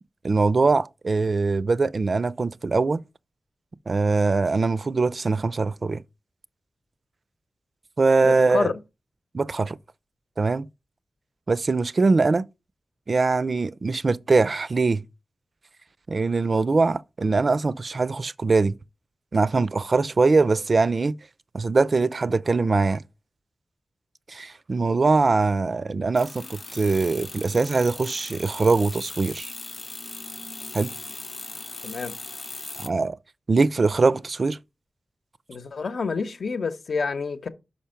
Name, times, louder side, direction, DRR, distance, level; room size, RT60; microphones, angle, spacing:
voice 1, 0.2-3.0 3.9-6.0 8.0-8.7 9.3-9.8 10.4-10.7 11.5-12.5 13.1-15.0 16.1-18.7 19.3-21.1 21.5-23.0 24.3-29.5 30.7-30.9 32.8-33.2 33.5-34.6, right 3 dB, 50° right, 0.3 m, -22 dB
voice 2, 8.2-8.8 31.8-32.1 35.5-37.5, left 4 dB, 70° left, 0.9 m, -28 dB
sound 1, 26.2-32.9, left 3 dB, 40° left, 0.6 m, -38 dB
5.7 x 5.3 x 5.7 m
wide cardioid pair, 95°, 0 cm